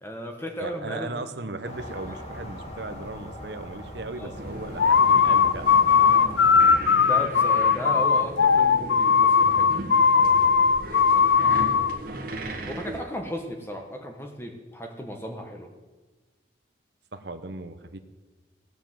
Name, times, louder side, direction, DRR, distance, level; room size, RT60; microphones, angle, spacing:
voice 1, 0.0-1.5 2.1-2.2 4.1-4.3 6.1-6.4 7.0-9.7 10.1-10.4 10.9-11.6 12.7-15.7, equal, 15° left, 3 dB, 1.4 m, -36 dB
voice 2, 0.6-5.7 12.6-12.7 17.1-18.0, right 2 dB, 65° right, 8 dB, 0.9 m, -37 dB
sound 1, 1.6-6.8, left 1 dB, 35° left, 2.1 m, -40 dB
sound 2, 4.3-13.0, right 1 dB, 50° right, 1.7 m, -37 dB
sound 3, 4.8-12.0, left 6 dB, 70° left, 0.5 m, -19 dB
17.5 x 7.1 x 7.6 m, 1.3 s
head